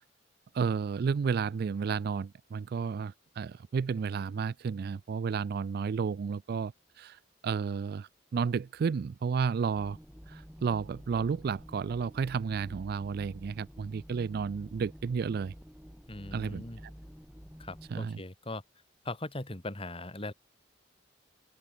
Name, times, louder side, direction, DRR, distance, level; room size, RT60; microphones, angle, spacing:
voice 1, 0.5-10.0 10.3-15.5 16.3-16.6 17.9-18.2, right 5 dB, 55° right, 0.3 m, -32 dB
sound 1, 9.7-17.9, equal, 5° right, 5.1 m, -49 dB
voice 2, 16.1-16.8 17.6-18.6 19.0-20.3, left 2 dB, 30° left, 2.8 m, -39 dB
open air
head